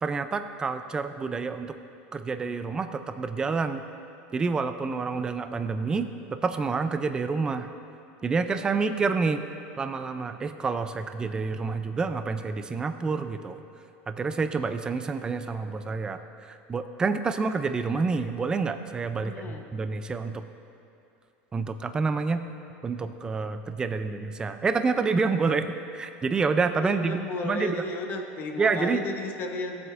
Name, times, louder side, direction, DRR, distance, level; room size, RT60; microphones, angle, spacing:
voice 1, 0.0-1.8 2.1-3.8 4.3-6.1 6.4-7.7 8.2-9.4 9.8-13.6 14.1-20.4 21.5-22.4 22.8-27.8 28.6-29.0, right 4 dB, 15° right, 9 dB, 0.3 m, -28 dB
voice 2, 19.2-19.6 26.8-29.9, left 3 dB, 35° left, 4 dB, 0.8 m, -34 dB
16.5 x 7.7 x 2.5 m, 2.7 s
supercardioid pair, 155°, 6 cm